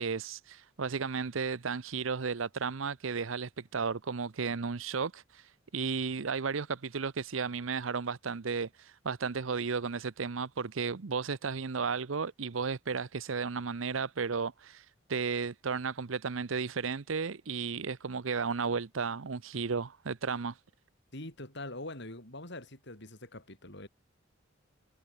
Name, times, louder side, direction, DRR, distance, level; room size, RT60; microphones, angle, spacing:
voice 1, 0.0-20.6, right 5 dB, 75° right, 0.7 m, -34 dB
voice 2, 21.1-23.9, left 2 dB, 60° left, 7.6 m, -43 dB
head